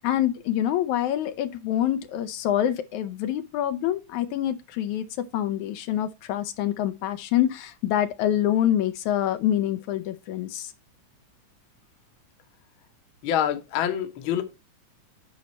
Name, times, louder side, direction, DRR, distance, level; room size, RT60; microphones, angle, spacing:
voice 1, 0.0-10.7, left 11 dB, 80° left, 1.9 m, -26 dB
voice 2, 13.2-14.4, left 10 dB, 60° left, 1.4 m, -26 dB
9.4 x 5.6 x 4.1 m
omnidirectional pair, 3.5 m